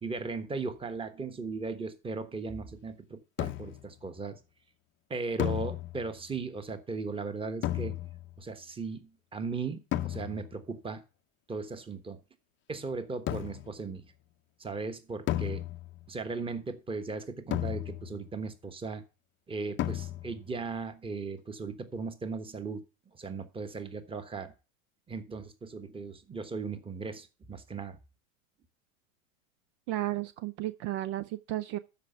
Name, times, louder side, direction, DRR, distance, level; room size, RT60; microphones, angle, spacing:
voice 1, 0.0-4.4 5.1-7.9 8.4-11.0 11.5-12.2 12.7-14.1 14.6-15.6 16.1-19.0 19.5-22.8 23.1-24.5 25.1-28.0, right 4 dB, 15° right, 1.2 m, -37 dB
sound 1, 3.4-3.9 5.4-6.3 7.6-8.4 9.9-10.6 13.3-13.8 15.3-16.1 17.5-18.3 19.8-20.5, left 14 dB, 30° left, 0.6 m, -34 dB
voice 2, 29.9-31.8, right 15 dB, 55° right, 0.7 m, -33 dB
12.5 x 4.9 x 6.6 m
supercardioid pair, 120°, 40 cm